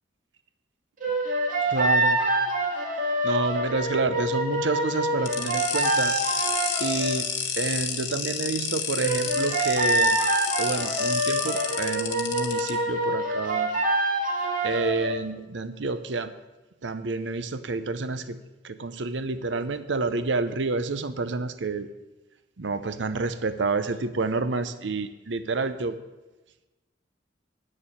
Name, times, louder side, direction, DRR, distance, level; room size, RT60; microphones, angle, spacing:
sound 1, 1.0-7.2 9.0-15.2, right 1 dB, 45° right, 2.2 m, -26 dB
voice 1, 1.7-2.2 3.2-6.2 6.8-10.2 10.6-13.7 14.6-16.3 16.8-18.4 18.6-21.9 22.6-26.0, right 3 dB, 75° right, 11 dB, 0.7 m, -29 dB
sound 2, 5.3-12.7, left 7 dB, 90° left, 1.5 m, -30 dB
9.3 x 6.6 x 8.5 m, 1.1 s
head